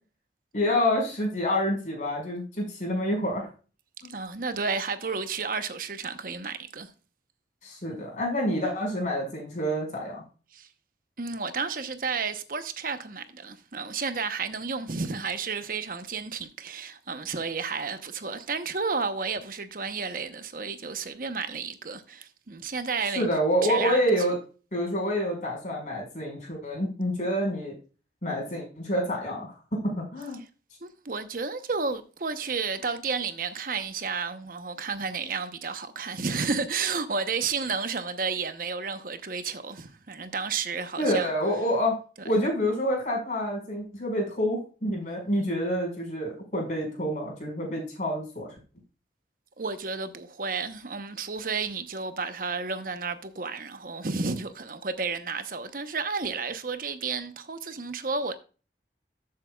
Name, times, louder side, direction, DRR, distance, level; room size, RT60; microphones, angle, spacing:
voice 1, 0.5-3.5 4.0-4.1 7.6-10.2 23.1-24.4 24.7-27.8 28.2-30.4 41.0-42.0 42.2-48.5, equal, 45° left, 5.4 m, -27 dB
voice 2, 4.1-6.9 10.5-10.7 11.2-23.3 23.6-24.0 30.8-41.3 42.2-42.3 49.6-58.3, right 4 dB, 50° right, 0.9 m, -32 dB
13.0 x 7.6 x 2.4 m
head